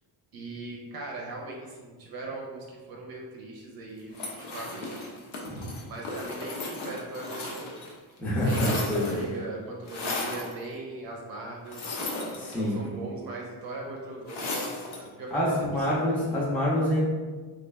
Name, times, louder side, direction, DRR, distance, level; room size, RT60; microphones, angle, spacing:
voice 1, 0.3-5.2 5.5-7.8 8.4-12.0 12.5-16.6, right 2 dB, 50° right, -1 dB, 0.5 m, -40 dB
sound 1, 4.1-7.9 8.2-9.3 9.9-10.5 11.7-12.9 14.3-15.1, left 2 dB, 80° left, 0.8 m, -35 dB
voice 2, 8.2-9.2 12.4-12.8 15.3-17.1, left 1 dB, 5° left, -6 dB, 0.4 m, -26 dB
3.1 x 2.4 x 3.3 m, 1.4 s
cardioid pair, 165°, 46 cm